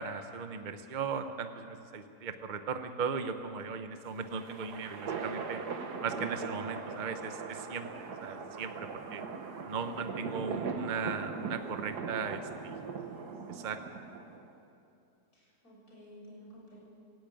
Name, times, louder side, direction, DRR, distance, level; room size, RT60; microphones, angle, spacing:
voice 1, 0.0-5.6 6.0-9.2 9.6-12.8 13.5-13.8, right 5 dB, 35° right, 8 dB, 1.0 m, -37 dB
sound 1, 4.0-14.5, right 5 dB, 85° right, 1.9 m, -40 dB
voice 2, 6.4-7.1 12.7-13.8 15.3-16.8, right 1 dB, 60° left, -5 dB, 7.7 m, -54 dB
17.5 x 17.0 x 9.2 m, 2.6 s
omnidirectional pair, 1.7 m